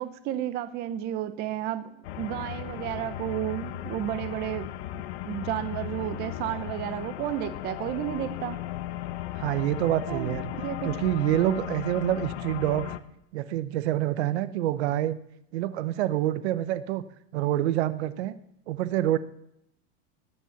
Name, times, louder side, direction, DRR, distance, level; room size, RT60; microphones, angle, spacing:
voice 1, 0.0-1.8 2.1-8.6 10.1-10.9, right 12 dB, 30° right, 11 dB, 0.7 m, -32 dB
sound 1, 2.0-13.0, left 13 dB, 70° left, 1.1 m, -36 dB
voice 2, 9.4-10.5 10.8-12.9 13.3-15.2 15.5-17.0 17.3-18.4 18.7-19.2, right 13 dB, 75° right, 14 dB, 1.0 m, -27 dB
19.0 x 7.6 x 7.1 m, 0.78 s
supercardioid pair, 165°, 33 cm